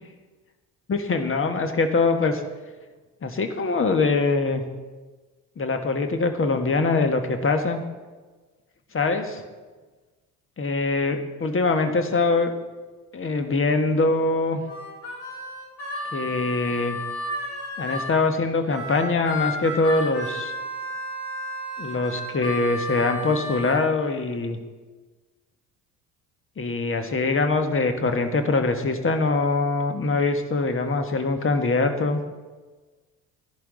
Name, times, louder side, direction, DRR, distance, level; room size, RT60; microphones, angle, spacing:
voice 1, 0.9-2.4 3.2-4.6 5.6-7.8 8.9-9.4 10.6-12.5 13.1-14.6 16.1-17.0 17.8-20.5 21.8-24.6 26.6-32.2, left 3 dB, 25° left, 6 dB, 1.4 m, -23 dB
Harmonica, 14.7-18.1 18.7-23.8, left 1 dB, 75° left, 3.9 m, -32 dB
16.0 x 11.0 x 3.9 m, 1.3 s
hypercardioid pair, 55°, 46 cm